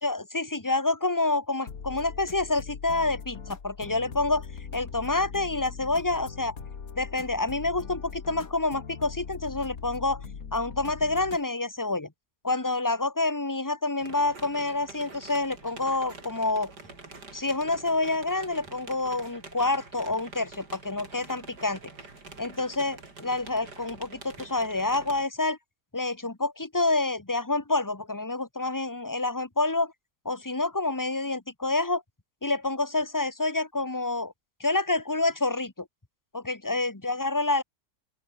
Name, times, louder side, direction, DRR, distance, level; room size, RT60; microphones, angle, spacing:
voice 1, 0.0-4.5 4.7-6.6 7.0-10.2 10.5-12.1 12.4-16.7 17.3-21.8 22.4-25.6 25.9-29.9 30.2-32.0 32.4-34.3 34.6-35.7 36.3-37.6, left 2 dB, 10° left, 1.7 m, -28 dB
sound 1, 1.7-11.4, left 6 dB, 60° left, 2.3 m, -41 dB
sound 2, 14.0-25.3, right 3 dB, 90° right, 4.8 m, -46 dB
open air
omnidirectional pair, 1.7 m